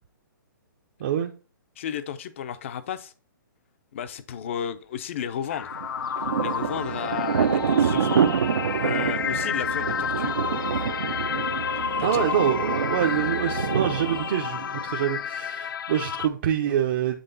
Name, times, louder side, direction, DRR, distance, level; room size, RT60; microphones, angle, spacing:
voice 1, 1.0-1.3 12.0-17.2, right 10 dB, 35° right, 0.6 m, -26 dB
voice 2, 1.8-3.1 3.9-5.7 6.1-8.3 8.8-10.7 12.0-12.3, left 9 dB, 35° left, 0.6 m, -33 dB
sound 1, 5.5-16.3, left 8 dB, 85° left, 0.4 m, -30 dB
Thunder, 5.7-15.2, right 7 dB, 80° right, 0.8 m, -27 dB
sound 2, 6.2-14.3, right 6 dB, 65° right, 1.5 m, -37 dB
7.8 x 3.7 x 3.9 m
hypercardioid pair, 175°, 11 cm